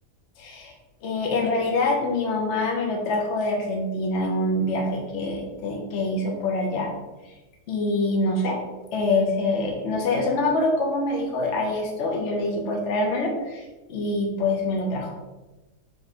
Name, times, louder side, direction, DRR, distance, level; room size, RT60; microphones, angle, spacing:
voice 1, 0.4-0.7 1.0-6.9 7.7-8.6 8.9-15.1, left 2 dB, 55° left, 0 dB, 0.9 m, -25 dB
3.6 x 3.3 x 4.1 m, 1.1 s
omnidirectional pair, 1.7 m